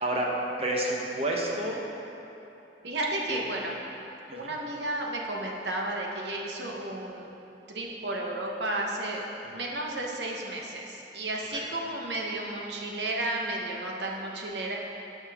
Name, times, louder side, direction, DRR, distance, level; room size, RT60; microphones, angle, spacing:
voice 1, 0.0-0.3 0.6-1.9 3.3-3.4 4.3-4.5 9.5-9.6 11.5-11.6, right 1 dB, 35° right, -2 dB, 1.0 m, -30 dB
voice 2, 2.8-3.7 4.3-7.3 7.7-9.2 9.5-14.8, right 2 dB, 80° right, -1 dB, 1.1 m, -33 dB
13.0 x 5.4 x 3.6 m, 2.9 s
head